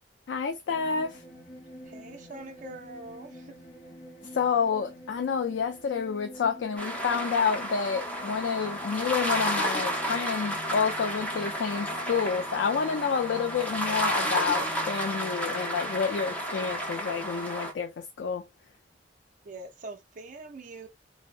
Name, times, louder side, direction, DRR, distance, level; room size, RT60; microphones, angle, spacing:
voice 1, 0.3-1.2 4.3-18.4, left 6 dB, 85° left, 0.4 m, -29 dB
sound 1, 0.7-17.8, left 1 dB, 45° left, 0.7 m, -48 dB
voice 2, 1.9-3.5 19.4-20.9, right 2 dB, 50° right, 0.5 m, -43 dB
sound 2, 6.8-17.7, equal, 10° left, 0.6 m, -32 dB
2.6 x 2.0 x 2.4 m
head